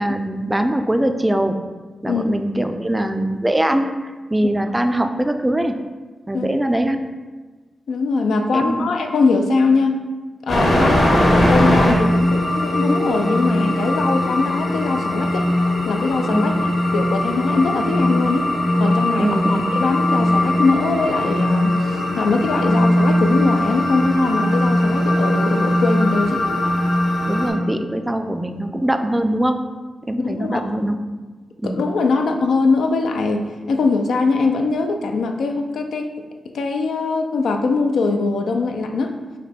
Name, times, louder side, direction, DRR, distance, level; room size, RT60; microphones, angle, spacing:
voice 1, 0.0-1.6 2.0-3.9 4.3-5.8 6.3-7.1 8.5-8.8 16.3-16.5 19.2-19.8 27.3-29.6 30.1-31.0 31.6-31.8, right 1 dB, 15° right, 7 dB, 0.3 m, -21 dB
voice 2, 7.9-10.0 10.5-15.5 15.9-18.5 18.8-26.5 30.2-30.7 31.6-36.1 36.5-39.1, left 3 dB, 85° left, 5 dB, 0.3 m, -21 dB
sound 1, 10.5-27.5, left 1 dB, 65° left, 1.4 m, -19 dB
4.9 x 2.2 x 4.2 m, 1.3 s
cardioid pair, 70°, 0 cm